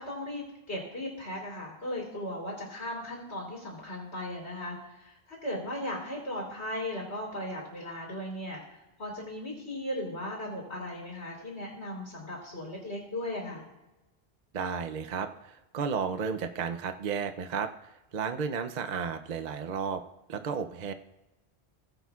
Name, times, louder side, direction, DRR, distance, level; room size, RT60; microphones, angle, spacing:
voice 1, 0.0-8.6 9.0-13.7, left 1 dB, 85° left, -3 dB, 3.4 m, -37 dB
voice 2, 14.5-20.0 20.3-20.9, right 6 dB, 50° right, 7 dB, 0.6 m, -33 dB
20.0 x 7.9 x 2.4 m, 1.0 s
omnidirectional pair, 1.1 m